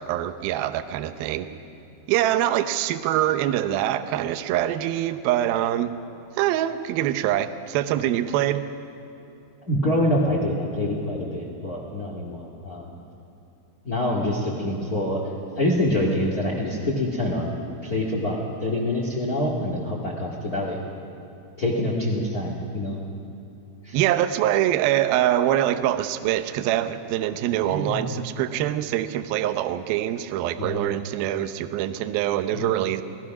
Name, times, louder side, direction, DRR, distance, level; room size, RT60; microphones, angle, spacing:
voice 1, 0.0-1.5 2.1-5.9 6.4-8.7 23.9-33.0, right 12 dB, 85° right, 10 dB, 2.1 m, -24 dB
voice 2, 9.6-12.9 13.8-15.2 15.6-17.5 17.8-20.8 21.6-23.0 23.8-24.0 27.7-28.5 30.6-30.9 32.5-32.7, left 1 dB, 35° left, -3 dB, 1.6 m, -26 dB
29.5 x 18.5 x 6.1 m, 2.8 s
omnidirectional pair, 5.4 m